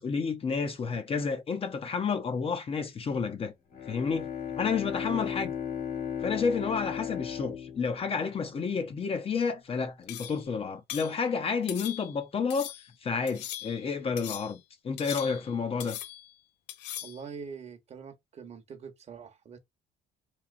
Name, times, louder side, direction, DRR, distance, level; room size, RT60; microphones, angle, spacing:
voice 1, 0.0-3.5 3.9-5.5 6.2-12.7 13.0-16.0, left 5 dB, 35° left, 0.6 m, -30 dB
Bowed string instrument, 3.7-8.9, left 8 dB, 65° left, 1.6 m, -36 dB
voice 2, 5.0-5.3 17.0-19.6, right 6 dB, 40° right, 0.9 m, -44 dB
sound 1, 10.1-10.5 10.9-11.2 11.7-12.2 12.5-12.9 13.3-13.9 14.2-14.6 15.0-15.6 15.8-16.3 16.7-17.2, left 12 dB, 85° left, 0.5 m, -40 dB
3.1 x 2.9 x 2.4 m
cardioid pair, 110°, 17 cm